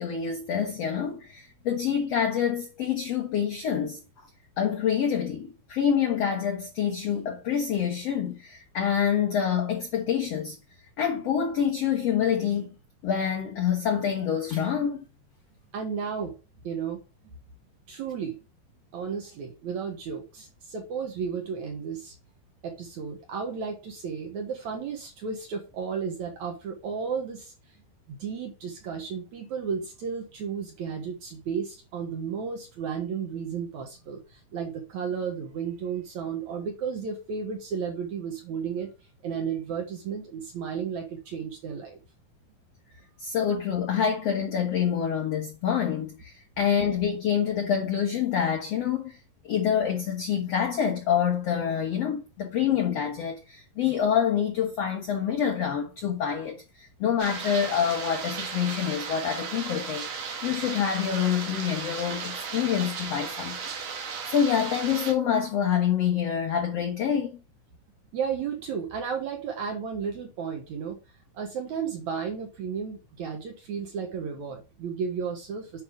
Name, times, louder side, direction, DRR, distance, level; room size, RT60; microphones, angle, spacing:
voice 1, 0.0-4.0 4.6-10.6 11.0-12.7 13.0-15.0 43.2-49.2 49.4-63.6 63.8-67.3, left 8 dB, 70° left, 1.5 m, -27 dB
voice 2, 15.7-16.4 16.6-17.0 17.2-17.3 17.9-18.4 18.9-22.1 22.6-27.5 28.1-38.9 39.2-42.0 68.1-71.0 71.3-75.8, right 6 dB, 60° right, 2.1 m, -33 dB
sound 1, 57.2-65.1, right 5 dB, 80° right, 3.8 m, -35 dB
9.4 x 5.3 x 3.6 m
omnidirectional pair, 4.4 m